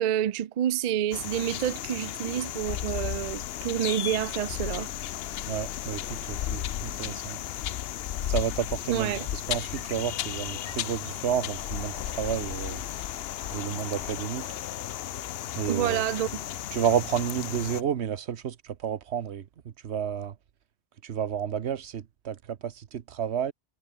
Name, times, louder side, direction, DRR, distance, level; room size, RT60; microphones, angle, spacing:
voice 1, 0.0-4.9 8.9-9.3 15.7-16.4, right 10 dB, 55° right, 0.5 m, -28 dB
sound 1, 1.1-17.8, left 12 dB, 70° left, 0.8 m, -34 dB
voice 2, 5.5-7.4 8.3-12.8 13.5-14.5 15.6-16.0 16.7-20.3 21.0-23.5, right 8 dB, 75° right, 1.2 m, -31 dB
omnidirectional pair, 1.1 m